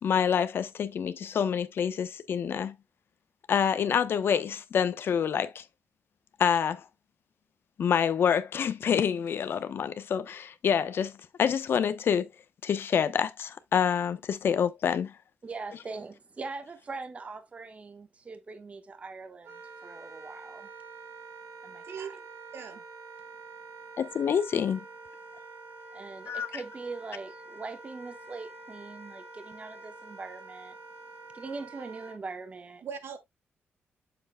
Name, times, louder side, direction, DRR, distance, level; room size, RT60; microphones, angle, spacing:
voice 1, 0.0-2.8 3.5-5.6 6.4-6.8 7.8-11.1 11.4-12.3 12.6-15.1 24.0-24.8 26.3-26.6, left 7 dB, 60° left, 0.8 m, -27 dB
voice 2, 15.4-20.7 21.6-22.2 25.9-30.8 31.3-32.8, right 4 dB, 30° right, 1.2 m, -42 dB
Wind instrument woodwind instrument, 19.4-32.2, right 3 dB, 90° right, 3.8 m, -47 dB
voice 3, 22.5-22.8 32.8-33.2, right 7 dB, 70° right, 1.8 m, -39 dB
8.2 x 7.0 x 2.2 m
cardioid pair, 120°, 4 cm